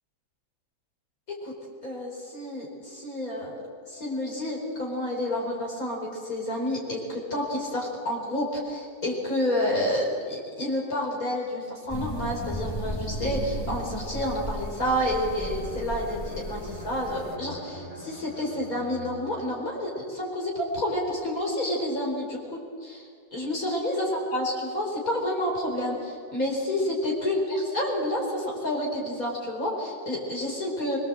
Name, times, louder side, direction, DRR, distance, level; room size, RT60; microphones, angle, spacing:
voice 1, 1.8-3.6 3.9-24.1 24.3-31.0, left 1 dB, 65° left, -2 dB, 5.2 m, -29 dB
sound 1, 11.9-17.4, equal, 15° left, 1.4 m, -35 dB
Bowed string instrument, 15.3-19.6, left 1 dB, 90° left, 5.7 m, -43 dB
24.5 x 22.5 x 7.8 m, 2.2 s
omnidirectional pair, 1.6 m